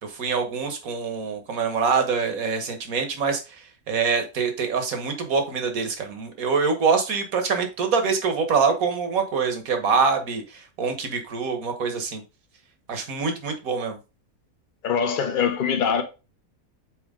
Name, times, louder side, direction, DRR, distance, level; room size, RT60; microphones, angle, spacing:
voice 1, 0.0-3.4 3.9-12.2 12.9-14.0, right 5 dB, 70° right, 1.6 m, -25 dB
voice 2, 14.8-16.0, left 7 dB, 40° left, 0.9 m, -23 dB
6.3 x 4.5 x 3.7 m
omnidirectional pair, 1.5 m